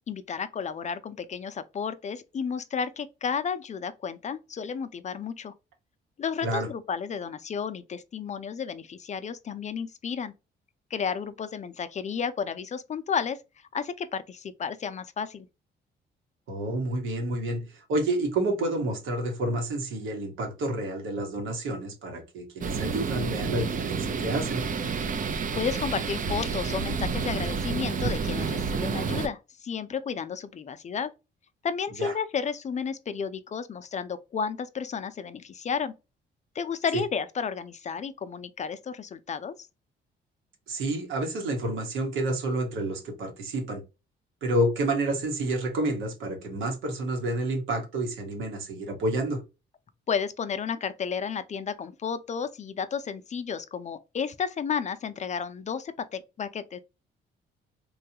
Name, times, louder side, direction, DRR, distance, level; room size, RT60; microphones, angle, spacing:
voice 1, 0.1-5.5 6.2-10.3 10.9-13.4 13.7-15.5 25.6-31.1 31.6-35.9 36.5-39.7 50.1-56.8, left 6 dB, 35° left, 0.4 m, -32 dB
voice 2, 16.5-24.6 32.0-32.1 36.9-37.0 40.7-43.8 44.4-49.4, right 1 dB, 85° right, 1.2 m, -29 dB
sound 1, 22.6-29.3, right 5 dB, 40° right, 0.6 m, -29 dB
3.1 x 2.3 x 2.7 m
cardioid pair, 90°, 20 cm